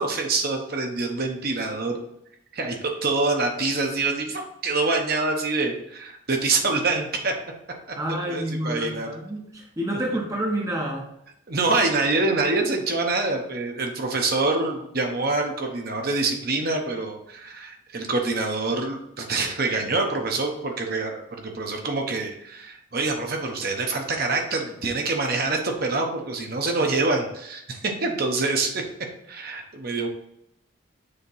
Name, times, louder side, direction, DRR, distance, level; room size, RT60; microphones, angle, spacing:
voice 1, 0.0-2.0 2.5-7.4 8.3-9.1 11.5-28.8 29.3-30.1, right 3 dB, 50° right, 3 dB, 0.9 m, -26 dB
voice 2, 8.0-11.1, right 1 dB, 15° right, -1 dB, 0.7 m, -29 dB
6.7 x 2.9 x 5.4 m, 0.76 s
head